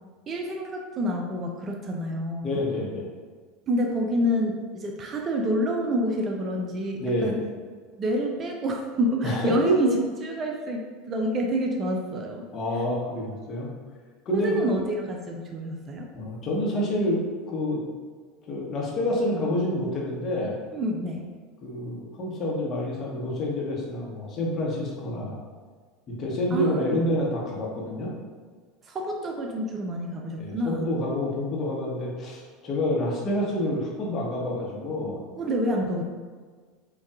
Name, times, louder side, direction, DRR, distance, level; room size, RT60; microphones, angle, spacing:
voice 1, 0.3-2.6 3.7-7.4 8.0-9.9 10.2-12.4 14.3-16.1 20.7-21.3 26.5-27.0 28.9-30.9 35.4-36.0, equal, 30° right, 1 dB, 0.4 m, -28 dB
voice 2, 2.4-3.1 7.0-7.3 9.2-9.9 12.5-13.7 14.3-14.6 16.1-17.2 17.5-17.8 18.5-20.6 21.6-25.4 26.1-28.1 30.4-35.2, left 1 dB, 35° left, -3 dB, 0.9 m, -28 dB
5.2 x 2.3 x 2.4 m, 1.5 s
figure-of-eight pair, 75°, 0 cm